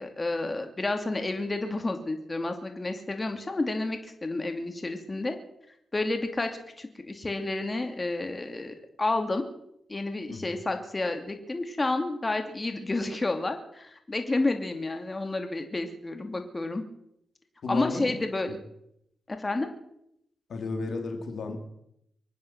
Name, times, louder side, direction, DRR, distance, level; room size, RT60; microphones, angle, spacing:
voice 1, 0.0-5.4 5.9-6.5 6.8-9.5 9.9-16.8 17.7-18.5 19.3-19.7, left 2 dB, 30° left, 6 dB, 2.6 m, -30 dB
voice 2, 17.6-18.1 20.5-21.6, left 3 dB, 65° left, 5 dB, 2.8 m, -33 dB
25.0 x 9.4 x 6.1 m, 0.78 s
hypercardioid pair, 40°, 0 cm